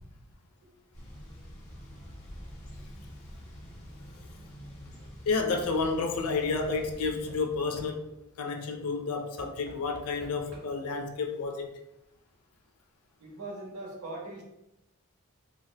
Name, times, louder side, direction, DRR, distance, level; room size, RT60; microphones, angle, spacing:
Thunder / Bicycle, 0.9-7.4, equal, 30° left, 0.7 m, -46 dB
Knock / Wood, 4.6-5.1 6.8-8.3 9.4-11.0 12.0-12.1 12.3-12.4, right 1 dB, 55° right, 0.9 m, -52 dB
voice 1, 5.3-8.1 8.4-11.7, left 4 dB, 85° left, 4 dB, 0.4 m, -30 dB
voice 2, 13.2-14.4, right 2 dB, 85° right, -1 dB, 0.8 m, -40 dB
4.0 x 2.1 x 2.2 m, 0.91 s
head